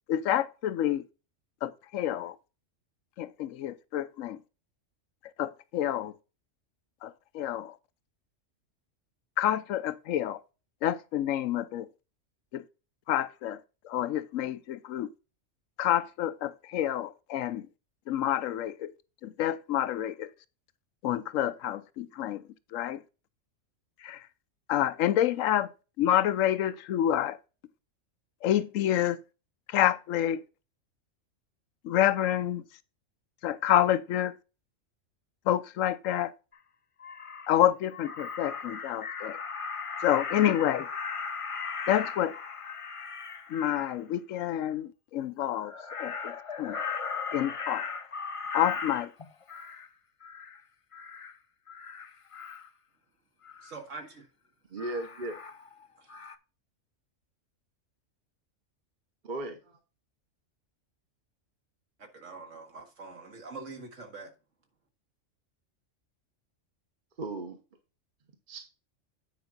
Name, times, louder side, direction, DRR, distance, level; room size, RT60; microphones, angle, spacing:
voice 1, 0.1-1.0 1.6-2.4 3.2-4.4 5.4-6.1 7.0-7.8 9.4-10.4 10.8-11.9 12.5-12.6 13.1-13.6 13.8-15.1 15.8-17.7 18.1-18.9 19.2-20.3 21.0-22.4 22.7-23.0 24.0-24.3 24.7-25.7 26.0-27.4 28.4-29.2 29.7-30.4 31.8-32.6 33.4-34.4 35.5-36.3 37.5-39.4 40.0-40.9 41.9-42.3 43.5-45.7 46.0-46.8 47.3-47.9 48.5-49.1, left 11 dB, 85° left, 1.0 m, -28 dB
Crow, 36.5-36.6 37.0-37.5 37.9-44.0 45.5-49.9 50.2-50.6 50.9-51.3 51.7-52.7 53.4-53.8 54.8-55.8 56.1-56.4, left 5 dB, 40° left, 0.5 m, -38 dB
voice 2, 53.6-54.3 56.0-56.1 62.0-64.3, right 3 dB, 75° right, 2.1 m, -44 dB
voice 3, 54.7-55.4 59.2-59.8 67.2-67.6 68.5-68.6, right 2 dB, 40° right, 1.2 m, -36 dB
9.4 x 5.0 x 4.0 m
omnidirectional pair, 1.3 m